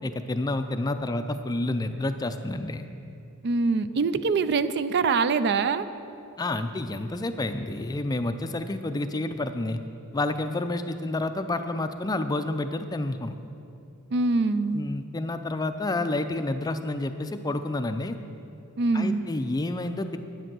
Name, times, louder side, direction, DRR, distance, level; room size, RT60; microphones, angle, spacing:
voice 1, 0.0-2.9 6.4-9.8 10.1-13.4 14.7-18.2 18.9-20.2, left 2 dB, 20° left, 9 dB, 0.4 m, -29 dB
voice 2, 3.4-5.9 14.1-14.8 18.8-19.2, right 4 dB, 50° right, 13 dB, 0.4 m, -24 dB
10.5 x 8.9 x 6.1 m, 2.6 s
head